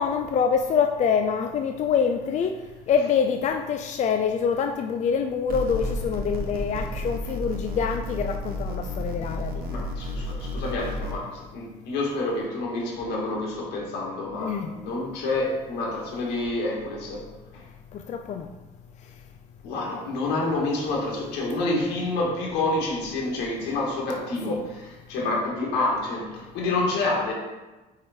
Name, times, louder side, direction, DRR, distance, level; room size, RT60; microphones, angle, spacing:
voice 1, 0.0-2.5 2.9-9.8 14.4-14.8 17.9-18.5 21.7-21.8 24.5-24.6, left 6 dB, 45° left, 5 dB, 0.4 m, -25 dB
sound 1, 5.5-11.1, left 1 dB, 60° right, 1.0 m, -31 dB
voice 2, 9.7-17.2 17.5-17.6 19.6-27.3, left 2 dB, 90° left, -2 dB, 1.7 m, -28 dB
4.8 x 4.6 x 4.4 m, 1.1 s
cardioid pair, 110°, 17 cm